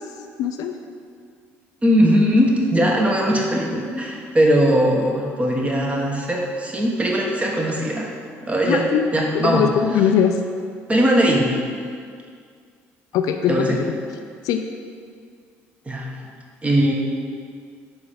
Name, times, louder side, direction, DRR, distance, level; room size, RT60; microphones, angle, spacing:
voice 1, 0.4-0.8 8.6-9.0 9.3-10.4 13.1-14.0 14.4-14.6, left 8 dB, 70° left, 6 dB, 0.4 m, -20 dB
voice 2, 1.8-8.1 8.4-8.8 9.1-9.6 10.9-11.5 13.5-13.8 15.9-16.1 16.6-16.9, equal, 20° right, -1 dB, 1.2 m, -19 dB
4.7 x 4.3 x 5.0 m, 2.1 s
supercardioid pair, 65°, 6 cm